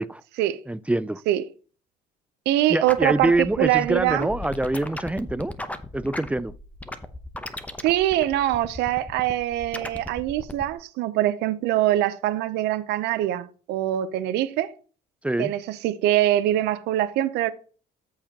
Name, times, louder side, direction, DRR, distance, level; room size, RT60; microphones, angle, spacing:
voice 1, 0.7-1.2 2.7-5.5 5.9-6.5 15.2-15.5, right 2 dB, 5° right, 0.3 m, -25 dB
voice 2, 2.5-4.3 7.8-14.7 15.4-17.5, right 14 dB, 90° right, 0.7 m, -23 dB
sound 1, 2.8-10.7, left 1 dB, 10° left, 0.8 m, -37 dB
14.0 x 4.9 x 2.9 m
cardioid pair, 110°, 17 cm